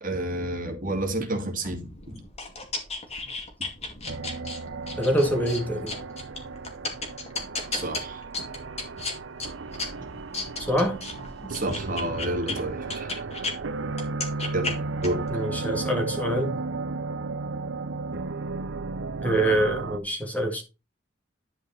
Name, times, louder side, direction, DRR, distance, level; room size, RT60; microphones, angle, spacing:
voice 1, 0.0-2.2 7.7-8.2 11.5-13.1 14.5-14.8 15.0-15.2, right 1 dB, 45° right, 2.2 m, -30 dB
sound 1, 1.6-13.5 13.9-15.3, left 3 dB, 35° left, 2.3 m, -35 dB
sound 2, 4.1-20.0, right 3 dB, 70° right, 0.6 m, -34 dB
voice 2, 5.0-5.9 10.7-11.0 15.3-16.6 19.2-20.6, right 1 dB, 10° left, 1.8 m, -25 dB
11.0 x 5.0 x 4.1 m
head